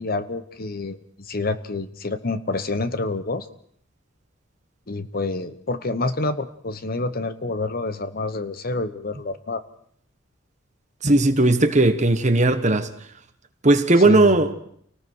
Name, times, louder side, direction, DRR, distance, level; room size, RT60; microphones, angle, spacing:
voice 1, 0.0-3.5 4.9-9.6 14.0-14.4, left 2 dB, 45° left, 1.0 m, -28 dB
voice 2, 11.0-12.9 13.6-14.5, right 2 dB, 35° right, 1.4 m, -17 dB
29.0 x 19.0 x 4.7 m
head